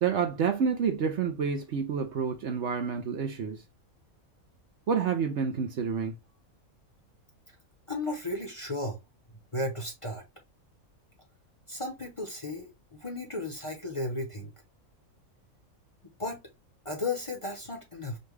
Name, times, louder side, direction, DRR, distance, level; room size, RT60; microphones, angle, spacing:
voice 1, 0.0-3.6 4.9-6.1, right 6 dB, 60° right, 0.9 m, -28 dB
voice 2, 7.9-9.0 9.5-10.2 11.7-14.5 16.2-16.4 16.8-18.2, left 2 dB, 25° left, 0.8 m, -34 dB
5.3 x 2.3 x 3.2 m
omnidirectional pair, 1.5 m